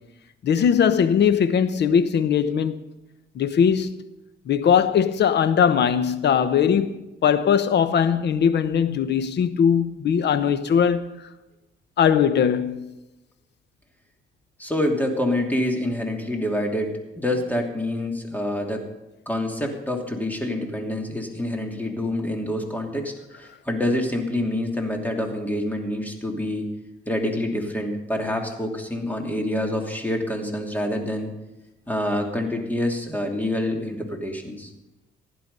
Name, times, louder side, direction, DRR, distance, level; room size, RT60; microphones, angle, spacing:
voice 1, 0.4-2.8 3.3-4.0 4.5-6.9 7.2-11.1 12.0-12.9, left 7 dB, 60° left, 1.0 m, -20 dB
voice 2, 14.6-18.9 19.3-26.7 27.1-31.3 31.9-34.7, left 1 dB, 10° left, 2.7 m, -27 dB
15.5 x 11.0 x 5.4 m
cardioid pair, 90°, 20 cm